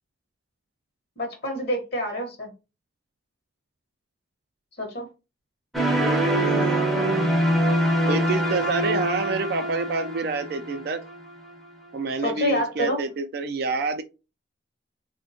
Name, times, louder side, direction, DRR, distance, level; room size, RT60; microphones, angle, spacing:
voice 1, 1.2-2.5 4.8-5.1 12.2-13.0, equal, 55° left, 0.8 m, -27 dB
sound 1, 5.7-11.7, equal, ahead, 0.5 m, -25 dB
voice 2, 5.9-7.3 8.1-11.0 11.9-14.0, right 4 dB, 55° right, 0.3 m, -27 dB
3.3 x 2.1 x 2.6 m
head